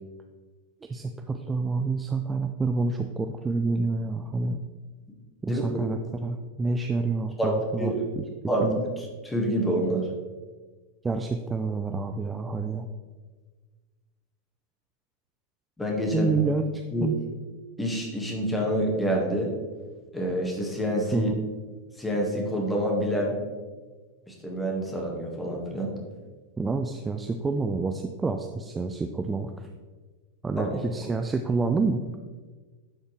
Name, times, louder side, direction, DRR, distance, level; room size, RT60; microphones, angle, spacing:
voice 1, 0.8-4.6 5.4-8.2 8.6-8.8 11.0-12.9 16.1-17.2 21.1-21.3 26.6-29.7 30.4-32.0, right 3 dB, 15° right, 5 dB, 0.4 m, -28 dB
voice 2, 5.4-5.8 7.4-7.5 7.8-8.0 8.5-10.1 15.8-16.3 16.9-17.1 17.8-19.5 20.1-21.3 22.0-23.4 24.3-25.9 30.7-30.8, equal, 10° left, 0 dB, 1.6 m, -27 dB
11.5 x 4.3 x 3.2 m, 1.4 s
figure-of-eight pair, 90°, 0 cm